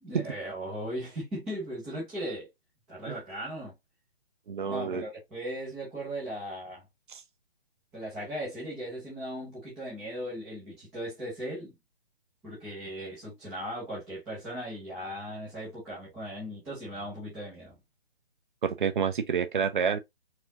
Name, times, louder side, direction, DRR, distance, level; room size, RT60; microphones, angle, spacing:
voice 1, 0.0-2.5 2.9-3.7 4.6-6.8 7.9-11.8 12.4-17.8, equal, ahead, 0.4 m, -38 dB
voice 2, 4.5-5.0 7.1-7.2 18.6-20.0, right 6 dB, 55° right, 0.7 m, -28 dB
4.3 x 2.3 x 2.7 m
figure-of-eight pair, 140°, 31 cm